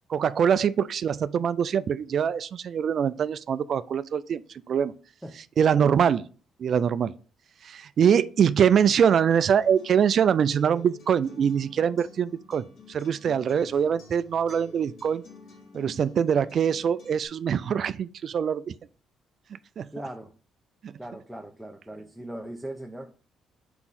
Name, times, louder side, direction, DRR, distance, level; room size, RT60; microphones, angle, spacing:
voice 1, 0.1-4.4 4.7-4.9 5.6-6.2 6.6-7.1 7.6-15.2 15.7-18.7 19.8-19.9 20.8-20.9, right 8 dB, 60° right, 0.3 m, -23 dB
Acoustic guitar, 9.3-17.2, left 4 dB, 70° left, 2.6 m, -50 dB
voice 2, 19.9-20.3 21.0-23.1, right 1 dB, ahead, 0.8 m, -39 dB
5.9 x 4.9 x 4.2 m
cardioid pair, 90°, 0 cm